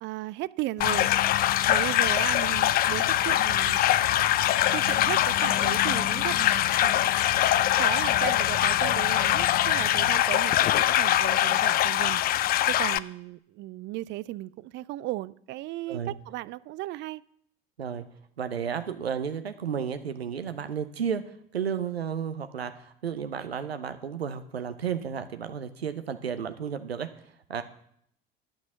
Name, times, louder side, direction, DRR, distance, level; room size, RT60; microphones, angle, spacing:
voice 1, 0.0-1.1 1.7-3.8 4.7-7.0 7.7-12.2 12.7-17.2, right 17 dB, 40° right, 0.4 m, -35 dB
sound 1, 0.8-10.2, left 11 dB, 60° left, 0.9 m, -37 dB
sound 2, 0.8-13.0, left 13 dB, 30° left, 0.4 m, -23 dB
voice 2, 18.4-21.2 21.5-27.1 27.5-27.6, right 7 dB, 80° right, 0.7 m, -32 dB
12.0 x 6.1 x 7.0 m
figure-of-eight pair, 60°, 30 cm